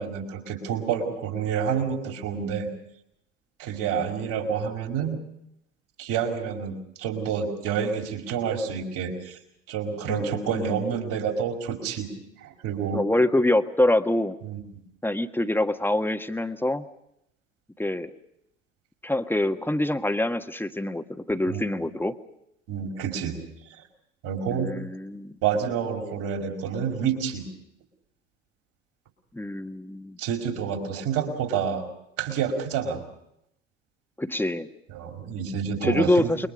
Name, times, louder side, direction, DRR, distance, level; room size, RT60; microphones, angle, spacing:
voice 1, 0.0-2.7 3.6-5.2 6.0-9.4 9.7-12.1 12.4-13.0 14.4-14.6 21.5-21.7 22.7-23.4 24.2-24.7 25.4-27.5 30.2-31.9 32.2-33.0 34.9-36.3, right 7 dB, 60° right, 2 dB, 5.3 m, -28 dB
voice 2, 10.1-10.8 12.9-14.4 15.0-16.8 17.8-18.1 19.0-22.1 24.5-25.4 29.3-30.2 34.2-34.7 35.8-36.5, left 1 dB, 5° left, 8 dB, 1.5 m, -25 dB
29.0 x 22.5 x 5.3 m, 0.78 s
hypercardioid pair, 65°, 36 cm